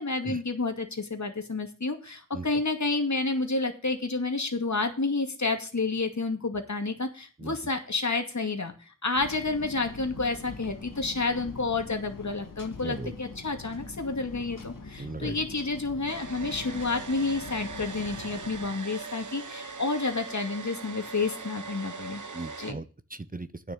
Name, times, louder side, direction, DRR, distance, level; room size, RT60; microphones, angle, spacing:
voice 1, 0.0-22.2 22.6-22.8, left 3 dB, 60° left, 5 dB, 2.3 m, -30 dB
sound 1, 9.1-18.7, left 4 dB, 90° left, 1.8 m, -43 dB
voice 2, 12.8-13.1 15.0-15.4 22.3-23.7, right 3 dB, 25° right, 13 dB, 0.8 m, -37 dB
Domestic sounds home sounds, 16.1-22.7, right 4 dB, 70° right, 1.2 m, -41 dB
9.4 x 6.6 x 7.3 m, 0.36 s
wide cardioid pair, 50°, 32 cm